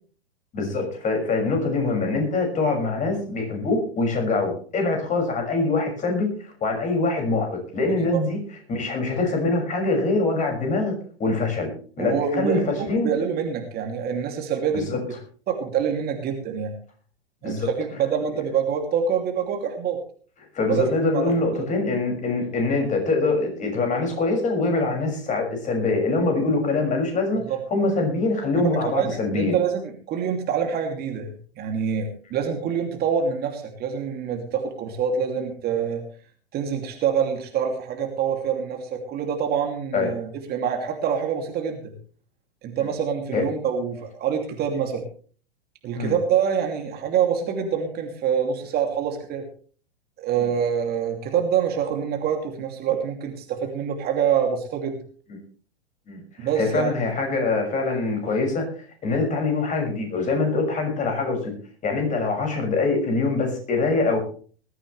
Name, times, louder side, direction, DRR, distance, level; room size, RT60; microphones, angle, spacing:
voice 1, 0.5-8.4 8.7-10.9 11.2-11.7 12.0-13.1 14.7-15.0 17.4-17.7 20.5-27.4 27.7-29.6 39.9-40.1 43.3-43.4 46.0-46.1 56.1-61.5 61.8-64.2, left 3 dB, 25° left, 2 dB, 6.3 m, -24 dB
voice 2, 12.0-14.9 15.5-16.7 17.4-20.0 20.7-20.9 21.1-21.7 27.5-27.6 28.8-36.0 36.5-41.9 42.6-45.0 45.8-49.4 50.2-54.9 56.4-56.9, right 7 dB, 30° right, 3 dB, 2.8 m, -26 dB
20.5 x 14.0 x 3.3 m, 0.43 s
figure-of-eight pair, 100°, 32 cm